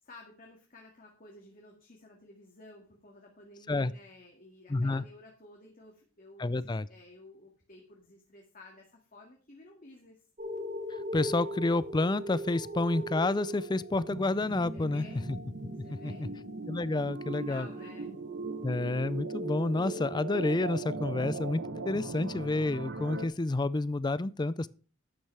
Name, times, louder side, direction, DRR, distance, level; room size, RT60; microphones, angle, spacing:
voice 1, 0.0-10.2 14.7-15.2 15.8-16.3 17.3-18.1, left 2 dB, 40° left, 2.1 m, -53 dB
voice 2, 4.7-5.0 6.4-6.9 10.9-15.4 15.9-16.3 16.7-17.7 18.6-24.7, left 2 dB, 20° left, 0.4 m, -30 dB
sound 1, 10.4-19.3 19.9-20.0, equal, 35° right, 1.7 m, -42 dB
sound 2, 13.9-23.3, right 3 dB, 55° right, 0.9 m, -39 dB
12.0 x 9.0 x 3.4 m
head